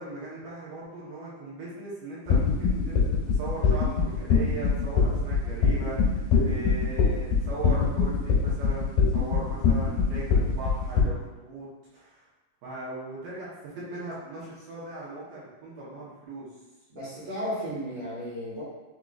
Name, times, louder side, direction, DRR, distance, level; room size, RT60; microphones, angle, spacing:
voice 1, 0.0-11.7 11.9-12.2 12.6-16.5, right 2 dB, 70° right, -8 dB, 2.5 m, -39 dB
sound 1, 2.3-11.0, left 5 dB, 75° left, 2.5 m, -23 dB
voice 2, 16.9-18.6, equal, 50° right, -11 dB, 1.8 m, -34 dB
6.2 x 2.8 x 2.4 m, 1.1 s
omnidirectional pair, 4.5 m